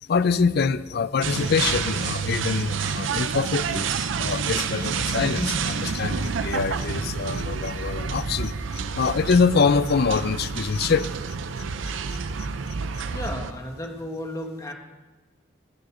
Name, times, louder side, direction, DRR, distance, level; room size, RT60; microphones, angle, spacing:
voice 1, 0.1-3.9 4.2-11.1, left 5 dB, 55° left, 16 dB, 0.4 m, -24 dB
sound 1, 1.2-13.5, right 5 dB, 85° right, 0.5 m, -29 dB
sound 2, 1.6-9.7, right 1 dB, ahead, 1.9 m, -43 dB
voice 2, 13.1-14.7, left 1 dB, 20° left, 3 dB, 1.4 m, -34 dB
19.0 x 6.7 x 5.0 m, 1.2 s
head